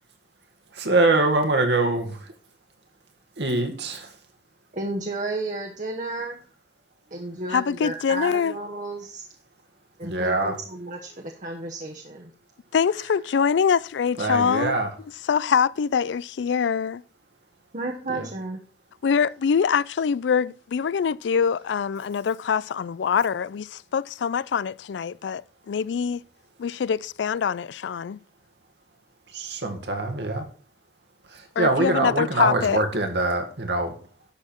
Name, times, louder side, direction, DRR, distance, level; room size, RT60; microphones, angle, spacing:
voice 1, 0.7-2.3 3.4-4.1 10.0-10.6 14.2-14.9 18.1-18.3 29.3-30.5 31.3-33.9, right 2 dB, 75° right, 1.9 m, -24 dB
voice 2, 4.7-6.4 7.1-9.2 10.0-12.3 17.7-18.6, right 2 dB, 45° right, 1.1 m, -32 dB
voice 3, 7.5-8.5 12.7-14.7 15.3-17.0 19.0-25.4 25.7-26.2 26.6-28.2 31.6-32.8, left 6 dB, 90° left, 0.4 m, -24 dB
11.5 x 6.8 x 4.5 m
head